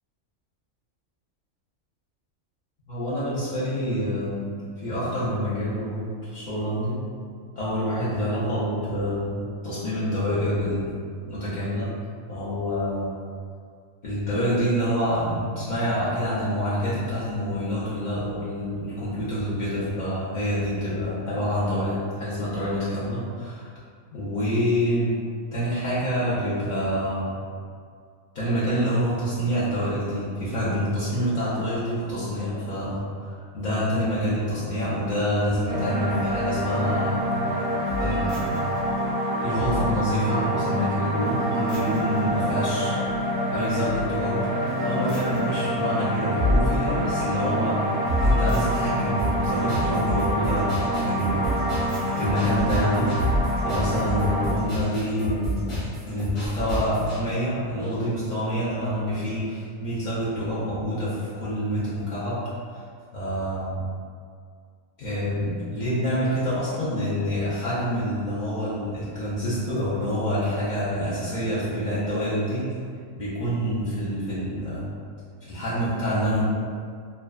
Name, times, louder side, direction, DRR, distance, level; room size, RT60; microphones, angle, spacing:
voice 1, 2.9-7.0 7.5-10.9 11.3-12.0 12.3-13.1 14.0-23.7 24.1-25.2 25.5-27.3 28.3-37.3 38.0-38.6 39.4-44.5 44.8-47.9 48.2-51.6 52.2-62.8 63.1-63.9 65.0-72.7 73.1-74.9 75.4-76.4, equal, 70° left, -11 dB, 0.4 m, -27 dB
sound 1, 35.7-54.5, equal, 65° right, 0.5 m, -26 dB
sound 2, 49.2-57.2, right 1 dB, 50° left, 1.1 m, -31 dB
2.5 x 2.1 x 2.3 m, 2.1 s
omnidirectional pair, 1.4 m